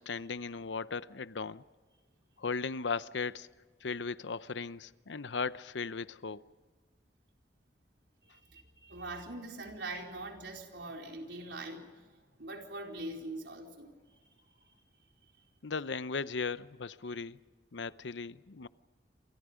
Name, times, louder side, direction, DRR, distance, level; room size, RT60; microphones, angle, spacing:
voice 1, 0.0-1.6 2.4-3.5 3.8-6.4 15.6-17.4 17.7-18.7, left 4 dB, 90° left, 0.8 m, -37 dB
voice 2, 8.3-12.1 12.4-14.2 14.7-14.8, right 2 dB, 90° right, 4.4 m, -43 dB
29.0 x 26.0 x 5.1 m
head